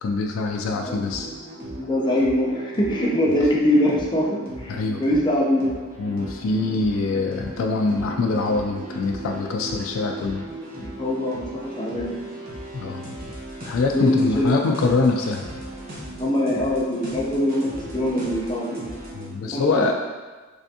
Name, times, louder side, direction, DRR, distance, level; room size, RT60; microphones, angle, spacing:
voice 1, 0.0-1.3 4.7-5.0 6.0-10.4 12.7-13.1 13.7-15.4 19.1-19.9, left 3 dB, 70° left, 2 dB, 0.3 m, -24 dB
sound 1, 0.6-19.3, right 1 dB, 45° right, 0.9 m, -37 dB
voice 2, 0.8-5.7 10.2-10.3 10.8-12.2 13.9-14.6 16.2-18.9 19.5-19.6, left 1 dB, 25° left, -4 dB, 0.5 m, -23 dB
3.4 x 3.3 x 2.7 m, 1.3 s
head